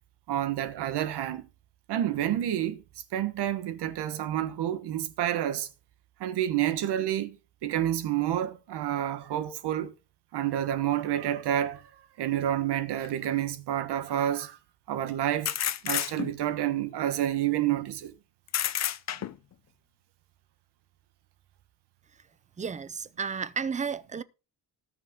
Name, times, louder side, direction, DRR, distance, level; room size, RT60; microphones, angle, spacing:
voice 1, 0.3-1.4 1.9-2.8 3.1-5.7 6.2-9.9 10.3-11.8 12.2-14.6 14.9-15.5 15.8-18.1 19.2-19.3, right 11 dB, 90° right, 1.4 m, -29 dB
sound 1, 13.0-13.1 15.4-16.5 18.5-19.5, left 11 dB, 45° left, 0.7 m, -30 dB
voice 2, 22.6-24.2, right 6 dB, 20° right, 0.5 m, -32 dB
18.5 x 6.5 x 3.7 m
cardioid pair, 180°, 39 cm